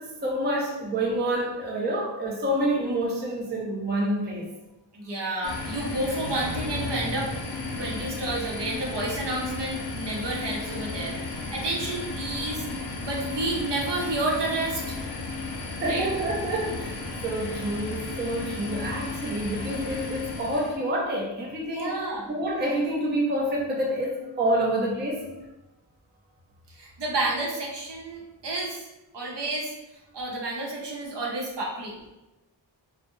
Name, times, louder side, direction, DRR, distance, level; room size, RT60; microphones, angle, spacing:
voice 1, 0.0-4.5 15.8-25.3, right 1 dB, 25° right, -1 dB, 0.5 m, -28 dB
voice 2, 4.9-7.3 7.7-12.7 13.0-15.0 15.9-16.1 21.6-22.3 26.7-28.9 29.1-29.7 30.1-32.0, right 2 dB, 65° right, -3 dB, 0.7 m, -30 dB
sound 1, 5.4-20.8, left 3 dB, 60° left, 0.6 m, -34 dB
2.2 x 2.1 x 2.9 m, 1.0 s
wide cardioid pair, 55°, 46 cm